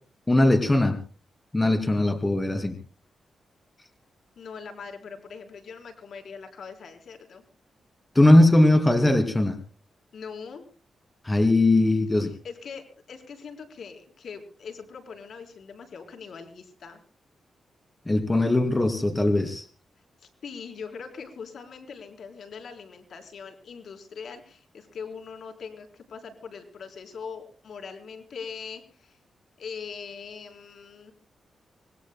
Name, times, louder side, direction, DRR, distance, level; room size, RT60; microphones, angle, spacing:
voice 1, 0.3-1.0 1.5-2.8 8.1-9.6 11.2-12.3 18.1-19.7, left 1 dB, 20° left, 7 dB, 2.5 m, -20 dB
voice 2, 4.4-7.4 10.1-10.7 12.4-17.0 20.2-29.2 29.6-31.1, left 6 dB, 70° left, 5 dB, 3.9 m, -41 dB
25.0 x 20.5 x 2.2 m, 0.38 s
cardioid pair, 90°, 0 cm